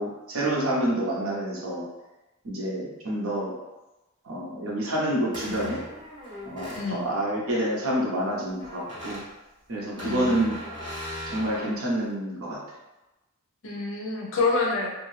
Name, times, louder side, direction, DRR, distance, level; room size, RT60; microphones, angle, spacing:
voice 1, 0.0-1.9 2.4-3.5 4.2-5.8 6.4-9.2 9.7-10.6 11.3-12.6, right 1 dB, 75° right, -4 dB, 0.8 m, -28 dB
sound 1, 5.3-6.9 8.6-9.2 10.0-11.7, equal, 20° right, 1.3 m, -38 dB
voice 2, 9.9-10.4 13.6-15.0, left 3 dB, 65° left, -1 dB, 0.6 m, -27 dB
2.6 x 2.2 x 3.2 m, 1.0 s
head